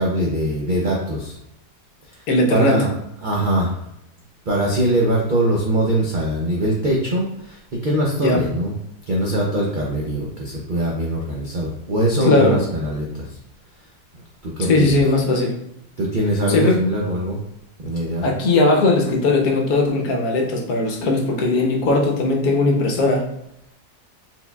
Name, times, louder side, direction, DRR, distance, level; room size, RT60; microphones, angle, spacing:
voice 1, 0.0-1.4 2.1-2.2 2.5-2.9 3.2-3.8 4.5-8.7 9.1-13.4 14.1-15.0 16.0-17.4 17.8-18.3, right 1 dB, 65° right, -2 dB, 0.4 m, -22 dB
voice 2, 2.3-2.8 8.2-8.4 12.2-12.6 14.7-15.6 16.5-16.8 18.2-23.3, left 2 dB, 70° left, 1 dB, 1.2 m, -18 dB
4.3 x 3.8 x 2.3 m, 0.81 s
omnidirectional pair, 1.7 m